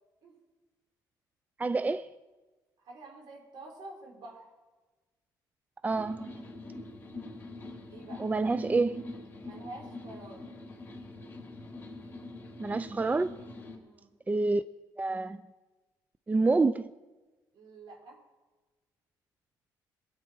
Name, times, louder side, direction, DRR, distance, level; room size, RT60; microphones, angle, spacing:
voice 1, 1.6-2.1 5.8-6.5 8.2-9.1 12.6-13.3 14.3-14.6 15.0-15.4 16.3-16.9, right 3 dB, 20° right, 0.4 m, -28 dB
voice 2, 2.8-4.5 7.9-8.2 9.4-10.5 13.8-14.1 17.5-18.2, right 2 dB, 70° right, 4.8 m, -48 dB
sound 1, 5.9-13.8, left 2 dB, 25° left, 3.5 m, -44 dB
22.5 x 8.9 x 4.7 m
cardioid pair, 85°, 8 cm